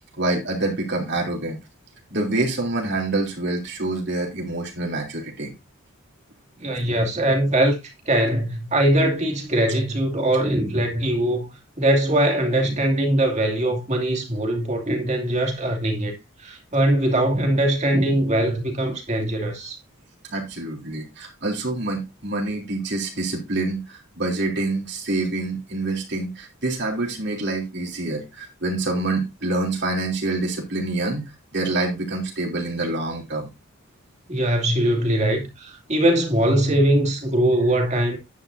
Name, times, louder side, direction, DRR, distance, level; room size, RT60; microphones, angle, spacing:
voice 1, 0.2-1.6 2.1-5.5 20.3-31.2 31.5-33.5, right 2 dB, 55° right, 3.4 m, -26 dB
voice 2, 6.6-7.8 8.1-11.5 11.8-19.8 34.3-38.2, right 1 dB, 35° right, 2.6 m, -21 dB
10.5 x 9.7 x 2.7 m
head